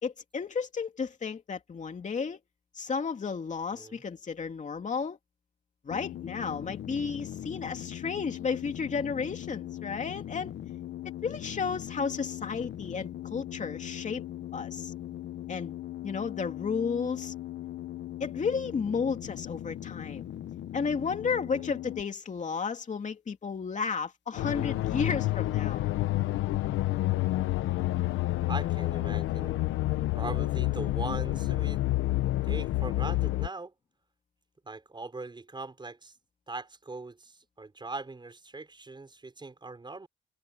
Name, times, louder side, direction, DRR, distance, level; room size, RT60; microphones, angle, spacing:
voice 1, 0.0-2.4 2.7-5.2 5.8-10.5 11.2-14.2 14.5-14.9 15.5-15.8 16.0-17.3 18.2-20.3 20.7-25.8, left 5 dB, 40° left, 2.8 m, -33 dB
voice 2, 3.7-4.0 21.5-21.7 28.5-29.6 30.1-31.8 32.4-33.7 34.6-36.2 36.5-40.1, right 3 dB, 25° right, 5.9 m, -40 dB
sound 1, 5.9-22.0, left 12 dB, 65° left, 1.2 m, -40 dB
sound 2, 24.4-33.5, left 17 dB, 90° left, 1.1 m, -28 dB
cardioid pair, 90°, 20 cm